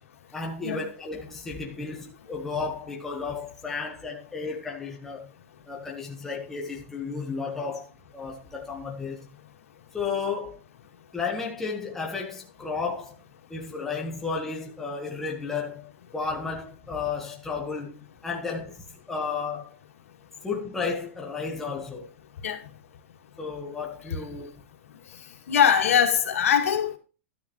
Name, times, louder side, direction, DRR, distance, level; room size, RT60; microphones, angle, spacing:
voice 1, 0.3-5.2 5.7-9.3 9.9-10.6 11.1-13.2 13.5-17.9 18.2-19.8 20.4-22.1 23.4-24.6, left 4 dB, 5° left, 1.2 m, -33 dB
voice 2, 25.5-27.0, left 8 dB, 85° left, 2.3 m, -22 dB
12.0 x 9.4 x 3.0 m
supercardioid pair, 180°, 7 cm